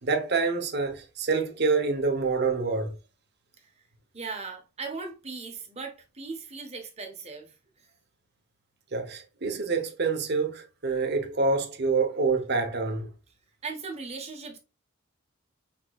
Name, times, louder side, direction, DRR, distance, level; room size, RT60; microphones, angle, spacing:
voice 1, 0.0-2.9 8.9-13.1, right 4 dB, 55° right, 0.9 m, -27 dB
voice 2, 4.1-7.5 13.6-14.6, right 4 dB, 30° right, 1.1 m, -38 dB
6.0 x 3.7 x 2.4 m
head